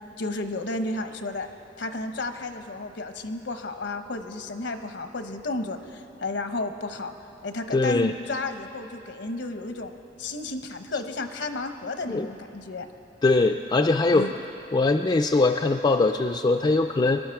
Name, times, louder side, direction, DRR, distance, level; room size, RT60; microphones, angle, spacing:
voice 1, 0.2-1.5 1.8-7.1 7.4-12.9 14.1-14.4, left 2 dB, 80° left, 7 dB, 0.9 m, -32 dB
voice 2, 7.7-8.1 12.1-12.3 13.2-14.3 14.7-17.2, left 3 dB, 25° left, 4 dB, 0.3 m, -21 dB
22.5 x 11.5 x 4.7 m, 2.9 s
head